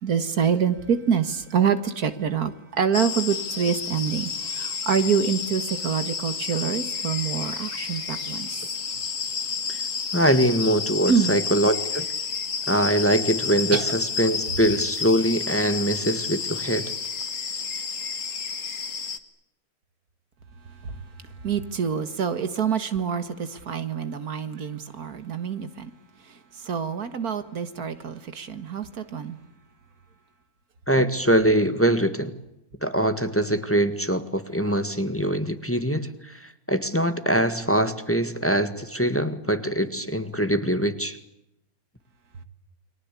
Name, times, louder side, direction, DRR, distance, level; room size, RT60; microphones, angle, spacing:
voice 1, 0.0-8.5 11.1-11.3 13.7-13.8 21.4-25.9 26.6-29.4, right 7 dB, 90° right, 2.2 m, -26 dB
sound 1, 2.9-19.2, left 5 dB, 60° left, 2.0 m, -31 dB
voice 2, 10.1-12.1 12.7-16.9 30.9-32.3 32.8-41.2, right 1 dB, 10° left, 1.7 m, -23 dB
29.5 x 23.5 x 8.4 m
omnidirectional pair, 1.5 m